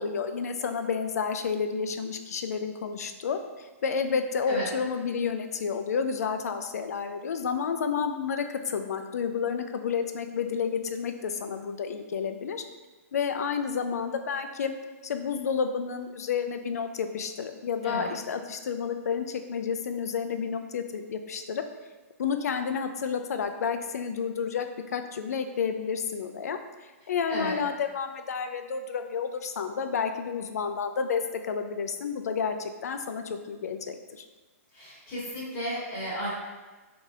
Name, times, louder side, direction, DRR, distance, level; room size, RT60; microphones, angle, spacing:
voice 1, 0.0-12.6 13.1-14.7 15.0-21.6 22.2-24.7 24.9-34.3, left 6 dB, 85° left, 7 dB, 0.4 m, -30 dB
voice 2, 34.7-36.3, equal, 30° left, -7 dB, 1.4 m, -33 dB
3.9 x 2.8 x 2.4 m, 1.3 s
hypercardioid pair, 150°, 8 cm